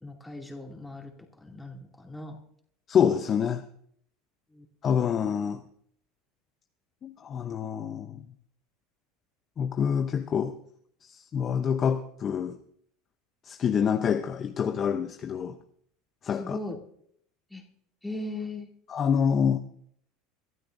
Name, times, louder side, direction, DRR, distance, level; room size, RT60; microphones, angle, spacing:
voice 1, 0.0-1.1 1.4-2.4 4.5-4.6 16.3-16.8 17.5-17.6 18.0-18.7, left 2 dB, 5° left, 2.6 m, -38 dB
voice 2, 2.9-3.6 4.8-5.6 7.0-8.2 9.6-10.6 11.0-12.6 13.4-15.6 16.2-16.6 18.9-19.6, left 7 dB, 35° left, 0.7 m, -26 dB
23.0 x 12.5 x 2.6 m
supercardioid pair, 120°, 0 cm